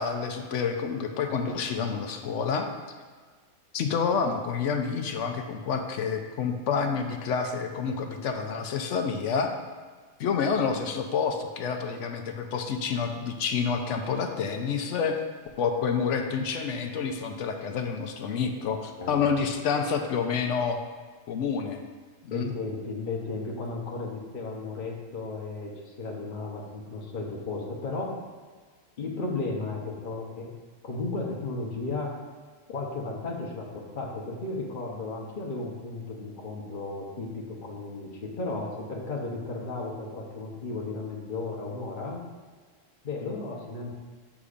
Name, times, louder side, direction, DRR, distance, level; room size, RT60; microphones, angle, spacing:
voice 1, 0.0-2.7 3.7-9.5 10.2-15.2 15.6-20.8 21.3-21.8 22.2-22.5, left 6 dB, 70° left, 5 dB, 0.9 m, -28 dB
voice 2, 22.3-28.2 29.0-30.5 30.8-32.2 32.7-42.2 43.0-43.9, left 3 dB, 45° left, -2 dB, 0.9 m, -34 dB
8.2 x 6.1 x 2.5 m, 1.5 s
omnidirectional pair, 1.3 m